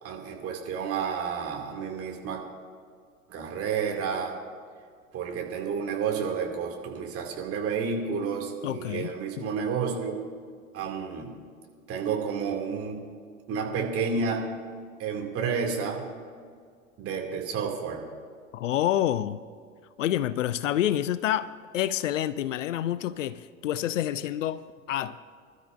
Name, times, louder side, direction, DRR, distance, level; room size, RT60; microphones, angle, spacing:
voice 1, 0.0-2.4 3.3-4.4 5.1-10.2 10.7-11.3 11.9-13.0 13.5-14.4 15.0-16.0 17.0-18.0, right 6 dB, 35° right, 2.5 m, -30 dB
voice 2, 8.6-9.5 18.5-19.4 20.0-25.2, left 12 dB, 65° left, 0.5 m, -28 dB
25.0 x 12.5 x 2.6 m
figure-of-eight pair, 80°, 41 cm